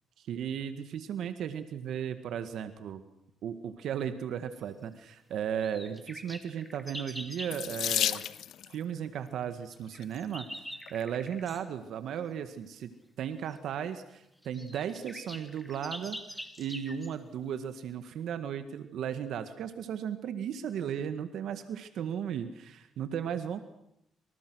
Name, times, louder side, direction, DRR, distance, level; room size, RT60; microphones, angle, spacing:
voice 1, 0.2-3.0 3.4-8.2 8.7-10.5 10.9-16.2 16.6-23.6, right 8 dB, 75° right, 9 dB, 1.8 m, -35 dB
sound 1, 5.6-7.6 9.7-11.7 13.5-13.6 14.1-14.2 14.4-17.1, equal, ahead, 2.9 m, -44 dB
Water tap faucet / Sink (filling or washing), 7.5-8.7 9.8-10.2 10.9-11.0 11.3-11.4, left 11 dB, 75° left, 0.9 m, -32 dB
28.0 x 26.5 x 6.4 m, 0.78 s
cardioid pair, 90°, 0 cm